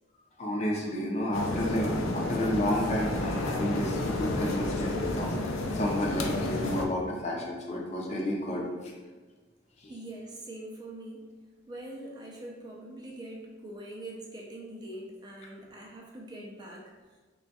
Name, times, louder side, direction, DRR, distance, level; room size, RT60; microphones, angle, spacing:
voice 1, 0.4-8.9 9.8-9.9, left 1 dB, 35° left, -1 dB, 0.5 m, -31 dB
sound 1, 1.3-6.9, left 2 dB, 90° left, 0.5 m, -31 dB
voice 2, 9.9-11.3 11.7-16.9, right 1 dB, 20° right, -2 dB, 0.4 m, -43 dB
3.3 x 2.3 x 4.0 m, 1.3 s
head